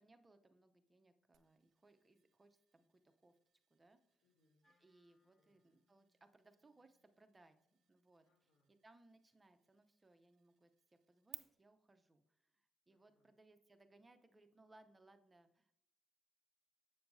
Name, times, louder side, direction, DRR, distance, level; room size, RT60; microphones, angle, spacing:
voice 1, 0.0-3.3 3.7-4.0 4.8-7.6 7.9-8.3 8.8-15.7, right 2 dB, 20° right, 8 dB, 0.7 m, -68 dB
sound 1, 1.3-11.4, right 10 dB, 70° right, 0.5 m, -63 dB
voice 2, 4.2-4.7 5.4-5.7 8.2-8.8 12.9-13.3, left 2 dB, 85° left, -5 dB, 1.8 m, -82 dB
Wind instrument woodwind instrument, 4.6-8.9, left 2 dB, 30° left, 1.8 m, -84 dB
7.8 x 6.7 x 2.7 m, 0.75 s
cardioid pair, 90°, 0 cm